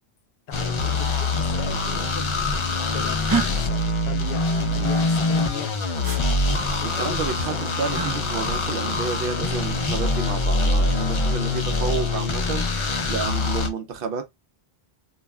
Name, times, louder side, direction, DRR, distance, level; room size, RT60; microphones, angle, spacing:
voice 1, 0.5-2.2 2.5-5.7 6.8-8.0 11.7-12.1, left 8 dB, 70° left, 0.8 m, -38 dB
sound 1, 0.5-13.7, left 2 dB, 50° left, 0.3 m, -24 dB
sound 2, 3.3-3.5 6.0-6.2 7.9-8.2 9.9-10.4, right 5 dB, 30° right, 0.4 m, -26 dB
voice 2, 6.8-12.7 13.1-14.3, right 5 dB, 65° right, 0.7 m, -30 dB
2.4 x 2.1 x 3.3 m
omnidirectional pair, 1.1 m